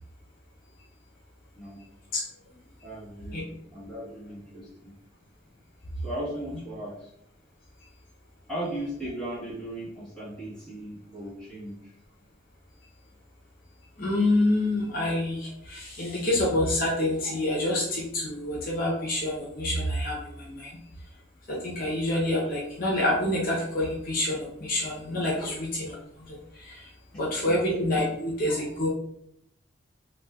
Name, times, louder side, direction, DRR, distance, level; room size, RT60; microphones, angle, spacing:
voice 1, 2.8-3.5 3.7-4.9 6.0-7.1 8.5-12.0 25.4-25.5 27.4-27.6, right 1 dB, 5° left, -9 dB, 1.1 m, -37 dB
voice 2, 14.0-20.7 21.5-26.0 26.3-26.9 27.1-28.9, left 1 dB, 45° left, -4 dB, 0.6 m, -27 dB
4.2 x 2.2 x 2.2 m, 0.74 s
head